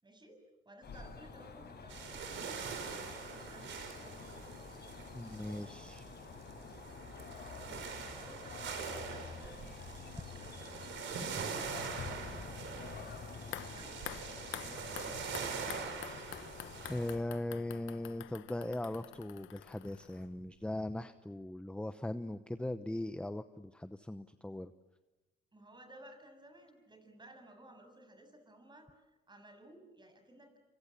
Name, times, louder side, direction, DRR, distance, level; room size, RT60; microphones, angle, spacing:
voice 1, 0.0-4.4 7.3-7.7 8.2-9.7 10.1-10.9 11.7-12.5 13.6-15.4 25.5-30.5, right 1 dB, 20° right, 7 dB, 7.2 m, -57 dB
sound 1, 0.8-17.1, left 5 dB, 55° left, 7.4 m, -48 dB
sound 2, 1.9-17.2, right 6 dB, 70° right, 5.1 m, -44 dB
voice 2, 5.1-6.0 16.9-24.7, left 1 dB, 5° left, 10 dB, 0.9 m, -39 dB
sound 3, 13.5-20.5 20.8-20.9, left 13 dB, 80° left, 1.0 m, -48 dB
27.0 x 26.0 x 7.3 m, 1.1 s
cardioid pair, 90°, 20 cm